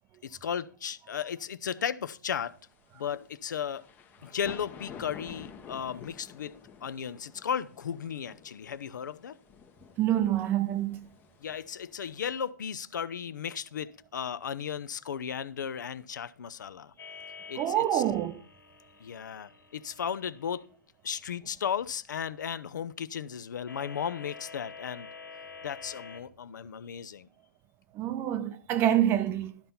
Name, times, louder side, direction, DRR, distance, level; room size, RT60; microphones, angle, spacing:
voice 1, 0.2-2.6 2.9-3.8 4.2-6.5 6.8-9.4 11.4-16.9 17.5-18.0 19.0-20.6 21.0-25.1 25.6-27.3, left 8 dB, 65° left, 0.6 m, -35 dB
sound 1, 2.4-12.5, left 7 dB, 15° left, 0.7 m, -50 dB
voice 2, 10.0-11.1 17.6-18.4 27.9-29.5, right 11 dB, 20° right, 0.6 m, -26 dB
sound 2, 17.0-20.7 23.7-26.2, left 5 dB, 90° left, 1.9 m, -48 dB
12.0 x 4.4 x 5.5 m
hypercardioid pair, 135°, 11 cm